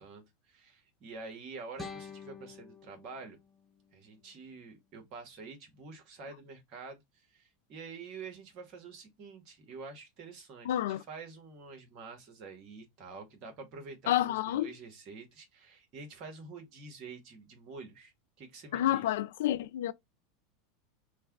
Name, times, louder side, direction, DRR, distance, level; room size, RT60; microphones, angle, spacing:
voice 1, 0.0-3.4 3.9-7.0 7.3-18.1 18.4-19.1, right 4 dB, 50° right, 1.3 m, -47 dB
sound 1, 1.8-4.8, left 4 dB, 15° left, 0.7 m, -49 dB
voice 2, 10.6-11.0 14.1-14.7 18.7-19.9, left 13 dB, 75° left, 0.4 m, -29 dB
3.2 x 2.3 x 3.4 m
hypercardioid pair, 95°, 0 cm